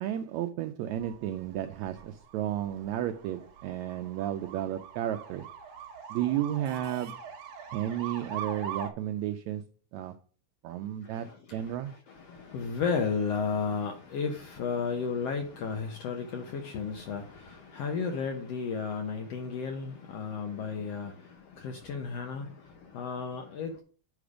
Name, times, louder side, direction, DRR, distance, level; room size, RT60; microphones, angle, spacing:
voice 1, 0.0-5.4 6.1-7.2 7.7-9.6 9.9-10.1 10.6-11.9, right 11 dB, 90° right, 1.6 m, -33 dB
sound 1, 1.0-8.9, right 7 dB, 60° right, 2.1 m, -42 dB
voice 2, 11.0-23.8, left 5 dB, 70° left, 1.6 m, -34 dB
8.6 x 5.0 x 4.9 m
omnidirectional pair, 3.8 m